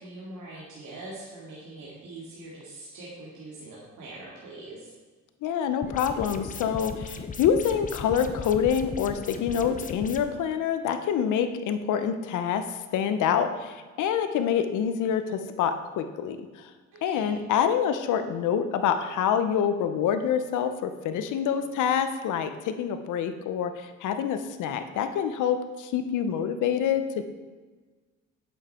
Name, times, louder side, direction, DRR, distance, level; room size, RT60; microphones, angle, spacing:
voice 1, 0.0-4.9 16.9-17.5, right 2 dB, 75° right, -6 dB, 2.4 m, -43 dB
voice 2, 5.4-12.6 12.9-16.4 17.0-27.2, left 8 dB, 85° left, 9 dB, 0.8 m, -26 dB
sound 1, 5.8-10.2, left 5 dB, 25° left, 0.7 m, -37 dB
8.7 x 7.4 x 4.3 m, 1.4 s
cardioid pair, 90°, 30 cm